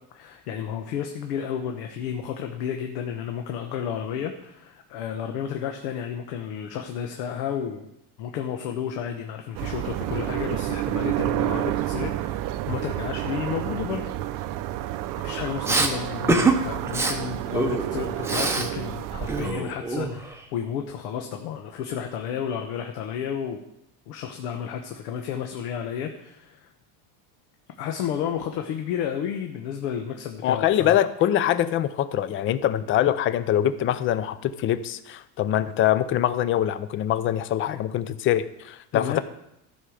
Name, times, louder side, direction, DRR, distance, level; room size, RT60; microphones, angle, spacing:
voice 1, 0.1-7.9 8.2-14.0 15.2-23.6 24.1-26.7 27.8-31.0 38.9-39.2, left 8 dB, 80° left, 4 dB, 1.2 m, -32 dB
sound 1, 9.5-19.5, right 14 dB, 45° right, 0.6 m, -30 dB
Respiratory sounds, 15.6-15.9 16.3-16.6 16.9-17.1 17.5-18.7 19.0-20.4, right 3 dB, 5° right, 0.7 m, -24 dB
voice 2, 30.4-39.2, left 11 dB, 30° left, 14 dB, 0.4 m, -24 dB
13.5 x 5.5 x 6.4 m, 0.80 s
cardioid pair, 150°, 46 cm